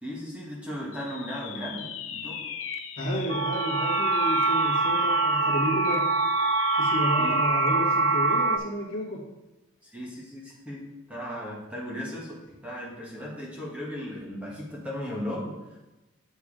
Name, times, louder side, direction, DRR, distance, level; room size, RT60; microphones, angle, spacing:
voice 1, 0.0-2.5 7.2-7.4 9.8-15.8, equal, 5° right, -4 dB, 1.6 m, -36 dB
sound 1, 0.9-7.9, left 7 dB, 75° left, 0.6 m, -37 dB
voice 2, 3.0-6.1 6.8-9.2, equal, 50° left, -6 dB, 1.7 m, -31 dB
sound 2, 3.3-8.6, right 3 dB, 60° right, 0.4 m, -24 dB
6.9 x 4.7 x 4.9 m, 1.0 s
head